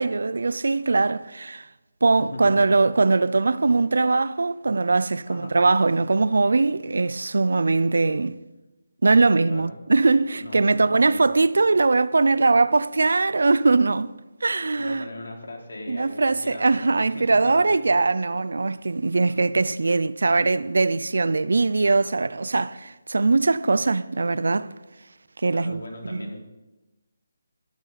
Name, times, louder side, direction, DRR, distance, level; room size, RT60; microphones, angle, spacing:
voice 1, 0.0-1.7 2.0-8.4 9.0-14.1 14.4-15.0 15.9-24.7 25.4-26.3, right 3 dB, 70° right, 0.6 m, -21 dB
voice 2, 2.2-2.6 5.3-5.6 9.5-9.7 10.4-11.2 14.8-17.8 19.2-19.4 25.5-26.5, left 1 dB, 85° left, 4.1 m, -39 dB
18.5 x 12.0 x 4.1 m
hypercardioid pair, 180°, 0 cm